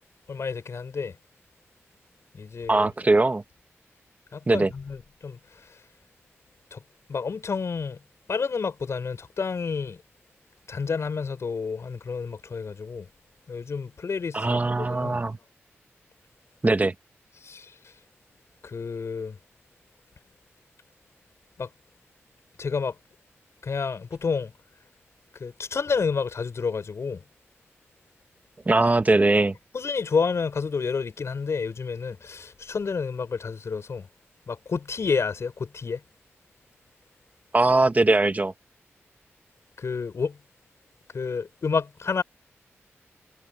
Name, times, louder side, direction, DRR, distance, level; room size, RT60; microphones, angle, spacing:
voice 1, 0.3-1.2 2.3-2.9 4.3-5.8 6.7-6.8 7.1-8.0 8.3-10.0 10.7-13.1 13.5-15.2 17.4-17.9 18.6-19.4 21.6-21.7 22.6-23.0 23.6-24.5 25.4-27.2 29.7-34.1 34.5-36.0 39.8-40.4 41.1-42.2, left 5 dB, 65° left, 7.1 m, -30 dB
voice 2, 2.7-3.4 4.5-4.7 14.3-15.4 16.6-16.9 28.7-29.5 37.5-38.5, right 2 dB, 30° right, 1.8 m, -21 dB
cardioid pair, 55°, 5 cm